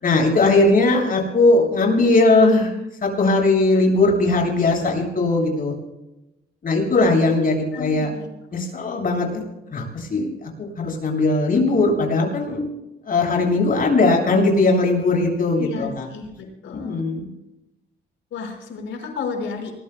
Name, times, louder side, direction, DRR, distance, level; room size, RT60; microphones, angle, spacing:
voice 1, 0.0-2.7 3.0-5.7 6.6-8.1 8.5-9.4 9.7-12.6 13.1-16.1 16.7-17.3, left 2 dB, 45° left, 0 dB, 7.6 m, -19 dB
voice 2, 7.7-8.3 15.6-17.0 18.3-19.7, left 5 dB, 75° left, 2 dB, 5.5 m, -32 dB
26.5 x 21.0 x 2.3 m, 0.93 s
cardioid pair, 90°, 20 cm